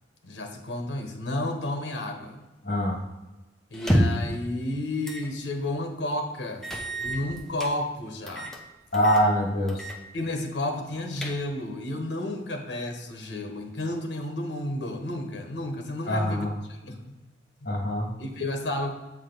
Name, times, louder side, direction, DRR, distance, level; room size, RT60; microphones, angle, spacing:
voice 1, 0.2-2.4 3.7-6.7 7.0-8.5 10.1-17.0 17.6-17.7 18.2-18.9, left 1 dB, 75° left, 3 dB, 1.0 m, -32 dB
voice 2, 2.6-3.0 8.9-9.8 16.1-16.5 17.7-18.1, equal, 55° left, -2 dB, 1.9 m, -24 dB
sound 1, 3.7-4.3 5.0-5.3 5.7-5.8 6.6-7.7 8.3-8.6 8.9-9.3 9.7-10.0 10.3-10.4 10.9-11.7, equal, ahead, 0.7 m, -28 dB
7.8 x 5.0 x 3.9 m, 1.1 s
head